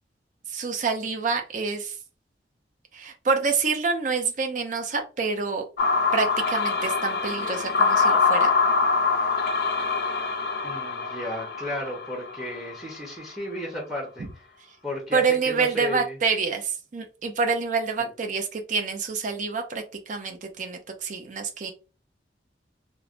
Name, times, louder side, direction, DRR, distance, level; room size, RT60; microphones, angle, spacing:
voice 1, 0.5-2.0 2.9-5.6 6.1-8.5 15.1-21.7, right 5 dB, 45° right, 4 dB, 0.5 m, -27 dB
sound 1, 5.8-12.9, left 4 dB, 60° left, 0.4 m, -24 dB
voice 2, 10.6-14.3 14.8-16.2 18.0-18.1, left 1 dB, ahead, -1 dB, 0.7 m, -34 dB
3.0 x 2.1 x 2.4 m, 0.33 s
head